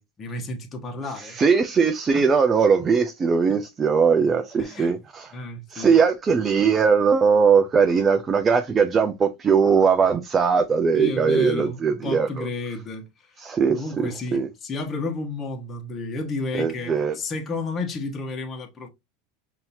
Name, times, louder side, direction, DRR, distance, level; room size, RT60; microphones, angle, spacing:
voice 1, 0.0-1.4 2.1-2.3 3.5-3.6 4.6-5.0 5.3-5.9 10.9-13.4 13.7-18.9, left 3 dB, 30° left, 1.2 m, -32 dB
voice 2, 1.2-5.3 5.7-12.5 13.4-14.5 16.5-17.2, right 5 dB, 25° right, 0.5 m, -20 dB
5.4 x 2.9 x 2.6 m
hypercardioid pair, 95°, 0 cm